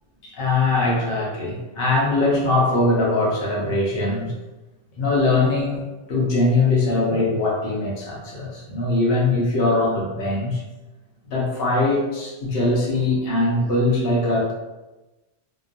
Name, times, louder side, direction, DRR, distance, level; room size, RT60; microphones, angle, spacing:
voice 1, 0.2-4.3 5.0-5.8 6.1-10.6 11.2-14.5, left 2 dB, 60° left, -4 dB, 0.9 m, -21 dB
2.9 x 2.0 x 2.4 m, 1.1 s
omnidirectional pair, 1.2 m